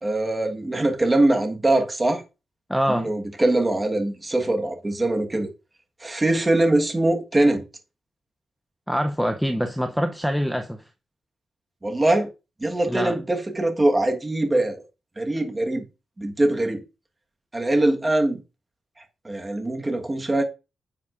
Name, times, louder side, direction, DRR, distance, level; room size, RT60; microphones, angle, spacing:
voice 1, 0.0-2.2 2.9-5.5 6.0-7.6 11.8-12.3 12.6-14.8 15.2-15.8 16.2-16.8 17.5-18.4 19.2-20.4, right 2 dB, 15° right, 1.4 m, -22 dB
voice 2, 2.7-3.1 8.9-10.8 12.9-13.2, equal, ahead, 0.6 m, -24 dB
9.8 x 7.2 x 2.5 m
wide cardioid pair, 140°, 0 cm